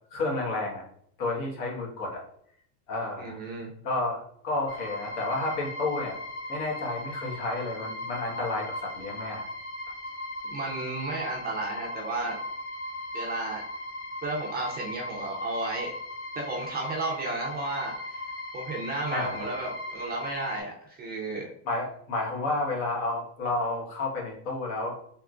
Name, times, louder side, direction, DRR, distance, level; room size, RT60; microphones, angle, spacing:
voice 1, 0.1-0.8 1.2-2.2 2.9-3.4 3.8-6.2 6.5-9.5 19.1-19.5 21.6-25.0, left 2 dB, 70° left, -2 dB, 1.5 m, -31 dB
voice 2, 3.2-3.7 10.4-12.4 13.1-13.6 14.2-15.9 16.3-18.2 18.5-21.5, right 2 dB, 25° right, -2 dB, 0.4 m, -33 dB
sound 1, 4.7-20.6, left 1 dB, 35° left, 1.2 m, -38 dB
3.5 x 2.9 x 2.4 m, 0.67 s
cardioid pair, 150°, 45 cm